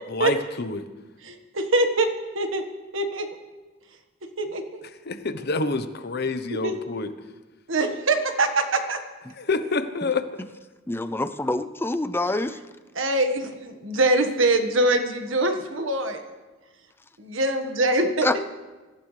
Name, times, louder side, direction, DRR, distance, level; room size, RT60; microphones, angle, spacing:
voice 1, 0.1-0.9 5.1-7.1 9.4-10.2, left 3 dB, 55° left, 10 dB, 1.0 m, -27 dB
voice 2, 1.2-2.1 2.3-2.6 2.9-3.4 4.4-4.8 6.5-6.7 7.7-9.0 12.9-16.2 17.2-18.3, right 2 dB, 85° right, 6 dB, 1.6 m, -23 dB
voice 3, 10.9-12.6 18.2-18.4, left 2 dB, 10° left, 10 dB, 0.5 m, -26 dB
24.5 x 15.0 x 3.3 m, 1.2 s
head